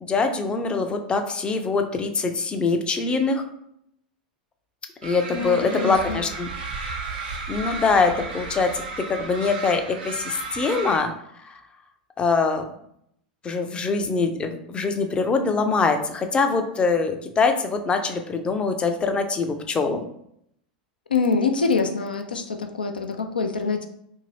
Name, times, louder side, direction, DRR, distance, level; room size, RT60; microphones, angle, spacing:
voice 1, 0.0-3.4 5.0-6.5 7.5-11.1 11.5-11.6 12.2-12.6 13.4-20.0, left 4 dB, 20° left, 6 dB, 0.4 m, -23 dB
sound 1, 5.0-11.0, right 3 dB, 70° right, 0.6 m, -34 dB
voice 2, 5.3-6.3 21.1-23.9, left 4 dB, 90° left, 5 dB, 0.4 m, -25 dB
2.7 x 2.6 x 3.1 m, 0.73 s
hypercardioid pair, 95°, 5 cm